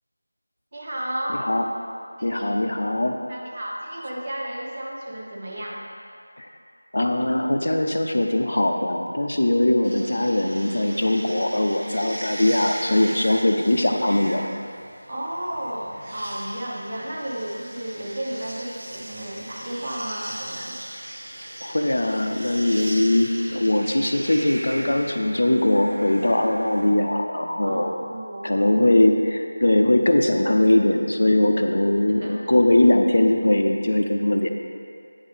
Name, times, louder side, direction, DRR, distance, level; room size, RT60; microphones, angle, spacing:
voice 1, 0.7-1.5 2.2-2.5 3.3-5.8 15.1-20.8 27.6-28.6 32.1-32.4, right 1 dB, 40° right, -3 dB, 0.9 m, -33 dB
voice 2, 2.2-3.2 6.4-6.5 6.9-14.5 21.6-27.9 28.4-34.5, left 1 dB, 60° left, 4 dB, 0.5 m, -21 dB
sound 1, 9.8-26.9, right 1 dB, 70° right, 0.9 m, -39 dB
8.8 x 4.6 x 3.3 m, 2.4 s
figure-of-eight pair, 170°, 0 cm